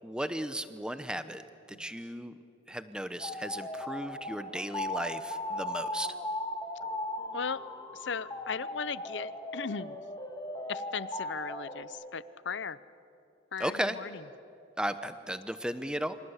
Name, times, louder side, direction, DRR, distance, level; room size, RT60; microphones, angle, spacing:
voice 1, 0.0-1.4 1.8-2.3 2.7-6.1 13.6-14.0 14.8-16.2, right 1 dB, 5° right, 11 dB, 0.9 m, -35 dB
sound 1, 3.2-11.8, left 1 dB, 20° left, 2.2 m, -38 dB
voice 2, 8.0-10.0 10.7-12.8 13.5-14.2, left 5 dB, 65° left, 17 dB, 0.7 m, -37 dB
28.0 x 26.0 x 8.2 m, 2.7 s
head